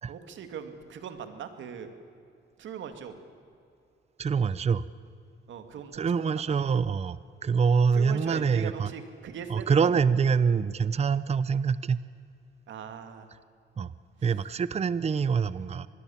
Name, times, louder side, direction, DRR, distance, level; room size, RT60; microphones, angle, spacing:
voice 1, 0.1-1.9 2.6-3.1 5.5-6.3 7.9-9.9 12.7-13.3, right 7 dB, 70° right, 8 dB, 2.4 m, -40 dB
voice 2, 4.2-4.8 5.9-8.9 9.5-12.0 13.8-13.9 14.2-15.9, right 6 dB, 30° right, 16 dB, 0.7 m, -25 dB
25.5 x 20.5 x 7.3 m, 2.5 s
cardioid pair, 90°, 20 cm